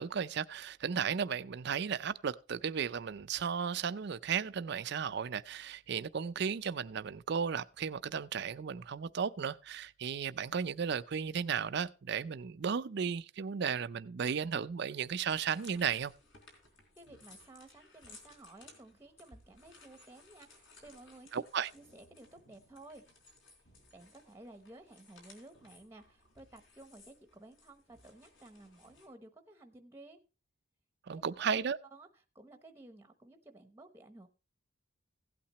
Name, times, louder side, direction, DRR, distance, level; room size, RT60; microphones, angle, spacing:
voice 1, 0.0-16.1 21.3-21.7 31.1-31.8, right 7 dB, 55° right, 0.4 m, -35 dB
sound 1, 15.0-29.1, left 3 dB, 60° left, 3.7 m, -60 dB
voice 2, 17.0-21.4 21.7-23.1 23.9-30.2 31.1-31.6 31.9-34.3, right 2 dB, 10° right, 0.8 m, -55 dB
16.0 x 8.6 x 3.0 m
head